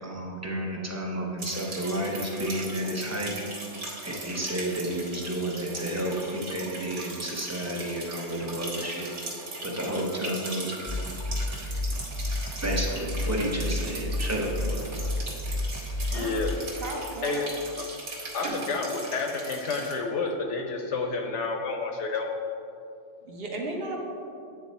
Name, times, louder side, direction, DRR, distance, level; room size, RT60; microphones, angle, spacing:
voice 1, 0.0-3.3 4.0-9.1 9.6-10.7 11.9-12.0 12.6-14.8, right 1 dB, 15° right, -2 dB, 0.6 m, -31 dB
sound 1, 1.4-19.9, right 2 dB, 70° right, 1.4 m, -39 dB
sound 2, 10.9-16.5, left 1 dB, 20° left, 0.7 m, -31 dB
voice 2, 16.1-16.5 17.2-17.5 17.8-17.9 18.3-22.3, left 4 dB, 70° left, 3 dB, 0.8 m, -30 dB
voice 3, 16.8-17.4 18.4-18.6 23.2-24.0, right 2 dB, 55° right, 0 dB, 1.0 m, -34 dB
8.8 x 3.6 x 4.1 m, 2.6 s
omnidirectional pair, 1.3 m